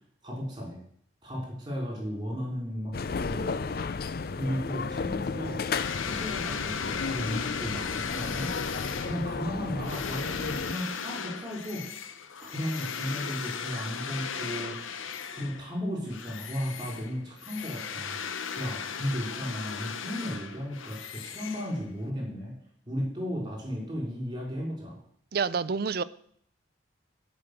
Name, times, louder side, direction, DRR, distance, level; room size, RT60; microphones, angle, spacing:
voice 1, 0.2-0.8 1.2-3.7 4.3-5.7 6.0-8.5 9.0-11.8 12.4-14.9 15.3-18.2 18.6-22.6 22.9-25.0, equal, 20° right, -1 dB, 4.0 m, -35 dB
sound 1, 2.9-10.7, left 4 dB, 50° left, 0.4 m, -33 dB
sound 2, 5.7-15.7 16.1-22.1, left 6 dB, 80° left, 0.8 m, -37 dB
voice 2, 25.3-26.0, right 5 dB, 50° right, 17 dB, 0.5 m, -28 dB
16.5 x 5.6 x 6.7 m, 0.65 s
head